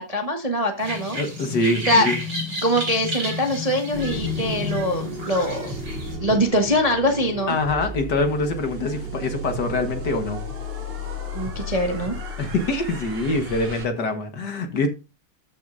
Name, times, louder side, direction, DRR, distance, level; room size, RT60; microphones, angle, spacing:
voice 1, 0.0-1.2 1.9-2.1 2.6-5.7 6.2-7.6 11.3-12.2, equal, 20° right, 3 dB, 1.0 m, -23 dB
sound 1, 0.8-6.2, left 2 dB, 50° right, 4.6 m, -31 dB
voice 2, 1.1-2.2 7.5-10.4 12.4-14.9, left 2 dB, 55° left, 7 dB, 1.8 m, -24 dB
sound 2, 3.9-13.9, left 1 dB, 75° right, 5.3 m, -34 dB
13.5 x 6.5 x 2.6 m, 0.28 s
omnidirectional pair, 2.4 m